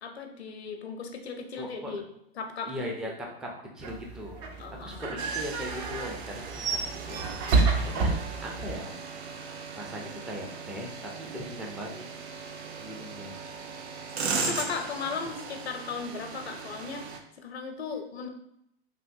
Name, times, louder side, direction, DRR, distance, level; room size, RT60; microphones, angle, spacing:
voice 1, 0.0-2.0 2.4-2.7 3.0-3.1 4.6-5.0 14.4-17.0 17.4-18.3, left 5 dB, 90° left, 5 dB, 0.6 m, -36 dB
voice 2, 1.6-1.9 2.7-3.1 3.4-3.5 3.7-4.4 4.8-7.2 7.8-8.2 8.4-9.0 9.7-12.0 12.8-13.4, equal, ahead, -1 dB, 0.3 m, -39 dB
sound 1, 3.8-8.8, right 4 dB, 45° right, 0.6 m, -29 dB
sound 2, 5.2-17.2, right 4 dB, 90° right, 0.5 m, -38 dB
3.4 x 2.6 x 2.6 m, 0.75 s
hypercardioid pair, 105°, 31 cm